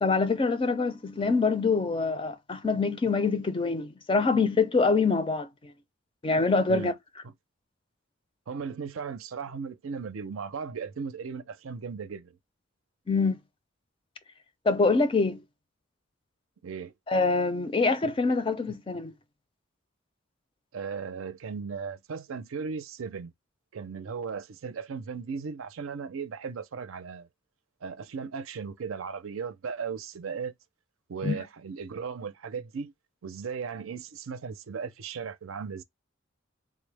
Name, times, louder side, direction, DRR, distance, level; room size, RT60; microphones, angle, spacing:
voice 1, 0.0-5.7 6.2-6.9 13.1-13.4 14.7-15.4 17.1-19.1 31.2-31.4, left 4 dB, 25° left, 0.4 m, -25 dB
voice 2, 8.5-12.4 16.6-16.9 20.7-23.3 23.7-27.3 27.8-30.5 31.1-32.9 33.2-35.8, right 5 dB, 90° right, 0.5 m, -36 dB
3.7 x 2.1 x 3.2 m
head